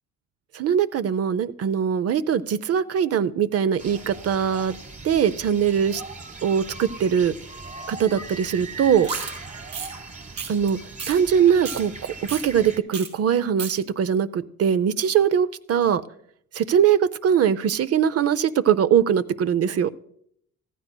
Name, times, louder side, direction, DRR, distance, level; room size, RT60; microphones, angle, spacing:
voice 1, 0.5-4.8 5.0-6.0 6.4-7.3 7.9-9.1 10.5-10.8 11.1-16.0 16.5-19.9, right 8 dB, 55° right, 14 dB, 0.6 m, -21 dB
sound 1, 3.8-12.8, right 3 dB, 25° right, 1.4 m, -39 dB
sound 2, 9.0-9.3 9.7-9.9 10.4-10.7 11.0-11.1 11.5-11.8 12.3-12.4 12.9-13.1 13.3-13.7, right 6 dB, 80° right, 3.7 m, -32 dB
15.0 x 14.5 x 2.2 m, 0.69 s
cardioid pair, 90°, 30 cm